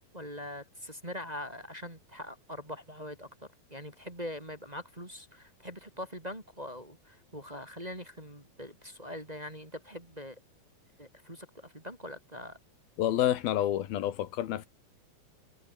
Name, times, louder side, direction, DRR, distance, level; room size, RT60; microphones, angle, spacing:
voice 1, 0.1-3.3 3.7-10.4 11.0-12.6, equal, 10° right, 2.8 m, -42 dB
voice 2, 13.0-14.7, left 12 dB, 90° left, 3.4 m, -28 dB
omnidirectional pair, 4.2 m